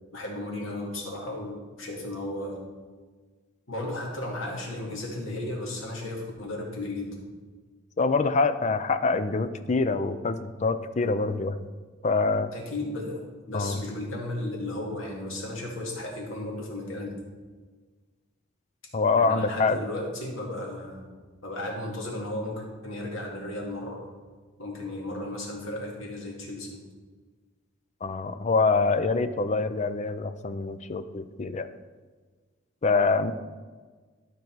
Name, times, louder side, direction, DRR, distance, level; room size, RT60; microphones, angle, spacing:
voice 1, 0.1-2.6 3.7-7.2 12.5-17.2 19.1-21.0 21.4-24.0 24.6-26.8, left 1 dB, 85° left, -2 dB, 2.3 m, -34 dB
voice 2, 8.0-11.7 12.0-12.5 13.5-13.8 18.9-19.8 28.0-31.7 32.8-33.3, left 4 dB, 35° left, 11 dB, 0.5 m, -25 dB
12.5 x 5.3 x 4.6 m, 1.4 s
head